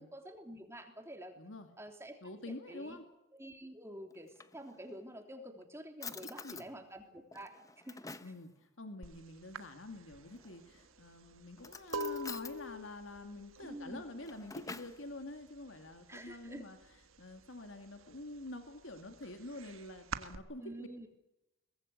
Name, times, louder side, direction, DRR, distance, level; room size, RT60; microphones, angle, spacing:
voice 1, 0.0-1.4 1.8-2.2 2.5-3.0 3.3-7.5 7.8-8.0 13.6-14.0 16.1-16.6 20.6-21.1, right 1 dB, 15° right, 4 dB, 3.1 m, -48 dB
voice 2, 1.4-1.7 2.2-3.0 6.1-6.7 8.2-16.8 17.2-20.9, left 2 dB, 65° left, 6 dB, 2.4 m, -47 dB
Drawer open or close, 4.1-5.1 5.6-5.7 6.0-6.7 7.3-8.4 10.3-10.8 11.6-12.6 14.0-15.0, left 4 dB, 15° left, 0.8 m, -48 dB
sound 1, 9.0-9.2 9.5-15.2 15.5-16.0 16.3-17.4 17.8-20.4, right 1 dB, 75° right, 1.6 m, -44 dB
23.5 x 19.5 x 8.0 m, 0.90 s
head